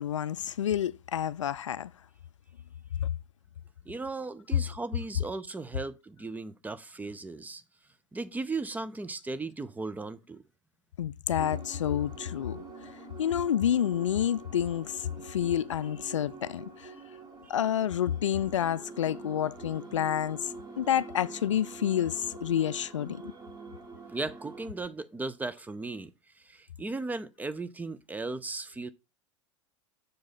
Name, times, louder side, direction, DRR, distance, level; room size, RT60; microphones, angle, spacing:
voice 1, 0.0-1.9 3.0-3.1 11.0-12.6 13.2-16.9 17.5-23.3, left 10 dB, 75° left, 0.4 m, -29 dB
voice 2, 3.9-7.6 8.1-10.4 17.4-17.5 24.1-26.1 26.4-28.9, right 3 dB, 10° right, 0.5 m, -36 dB
sound 1, 11.4-24.7, right 3 dB, 25° right, 2.2 m, -46 dB
6.4 x 4.8 x 4.0 m
figure-of-eight pair, 80°, 16 cm